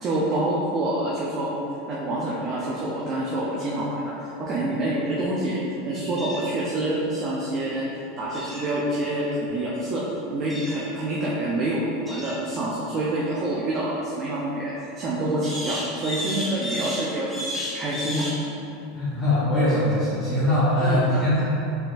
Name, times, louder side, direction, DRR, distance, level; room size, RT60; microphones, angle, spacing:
voice 1, 0.0-1.5 1.9-7.9 8.2-10.0 10.3-18.6 20.8-21.2, right 1 dB, 35° right, -6 dB, 0.6 m, -27 dB
sound 1, 6.2-6.5 8.3-8.7 10.5-10.8 12.1-12.4 15.4-18.4, equal, 5° left, 0.9 m, -32 dB
voice 2, 18.9-21.4, left 1 dB, 20° left, -12 dB, 1.0 m, -22 dB
4.5 x 3.9 x 2.6 m, 2.8 s
supercardioid pair, 130°, 0 cm